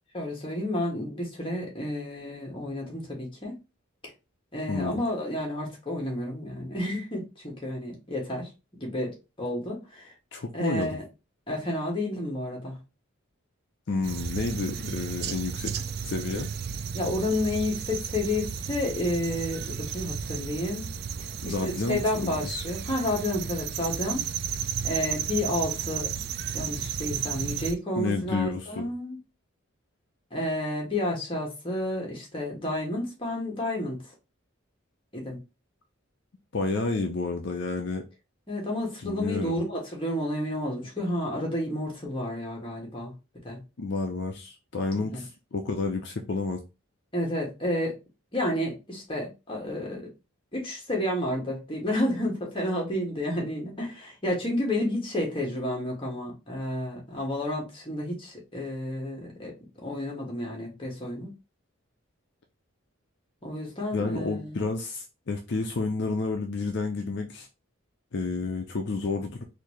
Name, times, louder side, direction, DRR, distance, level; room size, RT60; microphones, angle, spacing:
voice 1, 0.1-3.6 4.5-10.1 10.5-11.0 11.5-12.8 16.9-20.8 21.2-24.2 24.8-26.1 26.5-29.2 30.3-34.0 35.1-35.4 38.5-43.1 43.4-43.6 44.9-45.2 47.1-48.0 48.3-50.1 50.5-59.5 59.8-61.3 63.4-64.6, left 1 dB, 25° left, 1.4 m, -31 dB
voice 2, 4.7-5.0 10.3-11.0 13.9-15.7 16.0-16.5 21.4-22.5 28.0-28.9 36.5-38.0 39.0-39.6 43.8-46.6 63.9-67.5 68.1-69.4, left 3 dB, 55° left, 0.5 m, -30 dB
sound 1, 14.0-27.7, right 7 dB, 50° right, 0.3 m, -33 dB
4.1 x 2.7 x 3.1 m
head